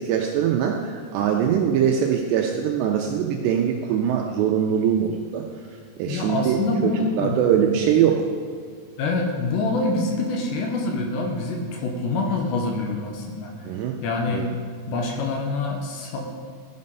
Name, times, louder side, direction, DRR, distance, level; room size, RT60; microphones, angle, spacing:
voice 1, 0.0-5.4 6.0-8.2 13.7-14.0 14.3-14.5, right 8 dB, 85° right, 1 dB, 2.5 m, -22 dB
voice 2, 6.1-7.5 9.0-13.6 14.0-14.4 14.9-16.2, left 3 dB, 75° left, 2 dB, 3.0 m, -26 dB
14.5 x 5.3 x 5.5 m, 2.1 s
omnidirectional pair, 5.5 m